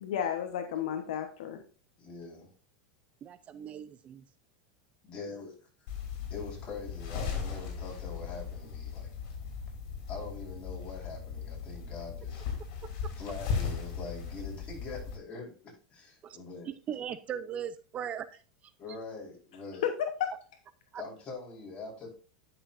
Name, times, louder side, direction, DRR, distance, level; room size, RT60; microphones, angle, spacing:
voice 1, 0.0-1.6 19.8-20.3, left 9 dB, 75° left, 6 dB, 1.0 m, -32 dB
voice 2, 2.0-2.5 5.0-5.9 6.3-9.1 10.1-12.5 13.2-16.7 18.8-19.8 20.9-22.1, left 3 dB, 30° left, -2 dB, 4.6 m, -43 dB
voice 3, 3.2-4.3 12.8-13.1 16.2-16.4 16.9-18.7 20.9-21.0, right 9 dB, 35° right, 14 dB, 0.5 m, -39 dB
sound 1, 5.9-15.2, left 6 dB, 60° left, 3.6 m, -37 dB
11.0 x 6.1 x 2.6 m, 0.36 s
hypercardioid pair, 105°, 4 cm